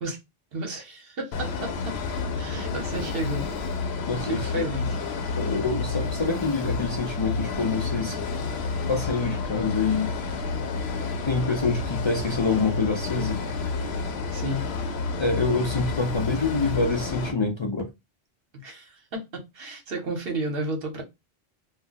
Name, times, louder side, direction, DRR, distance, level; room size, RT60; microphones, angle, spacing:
voice 1, 0.5-2.0 2.4-3.5 4.2-5.0 14.3-14.7 18.5-21.0, right 1 dB, 65° right, 1.1 m, -32 dB
sound 1, 1.3-17.3, left 4 dB, 80° left, 0.9 m, -30 dB
voice 2, 4.1-4.6 5.4-8.2 8.9-10.1 11.3-13.4 15.2-17.9, left 4 dB, 45° left, 0.4 m, -26 dB
2.3 x 2.2 x 3.7 m
omnidirectional pair, 1.1 m